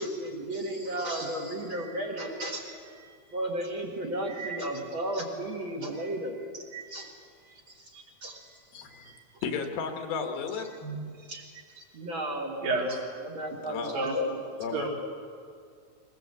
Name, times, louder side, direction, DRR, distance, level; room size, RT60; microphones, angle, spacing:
voice 1, 0.0-7.1 7.4-7.9 8.2-9.2 11.2-11.4 11.8-12.7 13.2-14.4, right 1 dB, 40° right, 0 dB, 2.3 m, -35 dB
voice 2, 8.7-9.2 9.4-10.7 11.0-11.1 13.6-14.0 14.6-14.9, left 5 dB, 75° left, 5 dB, 3.2 m, -34 dB
voice 3, 12.6-13.1 13.9-14.1 14.7-14.9, right 3 dB, 65° right, -2 dB, 4.9 m, -30 dB
22.0 x 20.0 x 8.1 m, 2.2 s
omnidirectional pair, 4.4 m